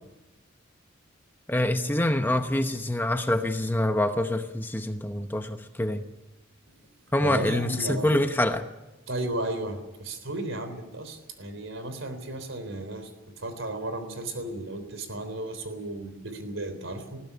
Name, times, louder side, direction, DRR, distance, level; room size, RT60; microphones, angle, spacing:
voice 1, 1.5-6.0 7.1-8.7, left 1 dB, 10° left, 7 dB, 0.9 m, -26 dB
voice 2, 7.1-8.1 9.1-13.1 13.4-17.2, right 1 dB, 70° right, 9 dB, 3.6 m, -34 dB
20.5 x 16.0 x 9.8 m, 1.1 s
head